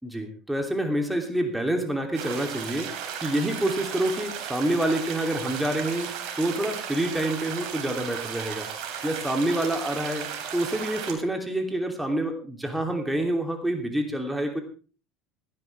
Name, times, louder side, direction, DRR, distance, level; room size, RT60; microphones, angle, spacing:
voice 1, 0.0-2.9 3.2-8.7 9.0-14.6, right 1 dB, 5° right, 4 dB, 2.9 m, -27 dB
sound 1, 2.1-11.1, right 8 dB, 65° right, 3.5 m, -35 dB
17.0 x 12.0 x 3.4 m, 0.37 s
hypercardioid pair, 75°, 0 cm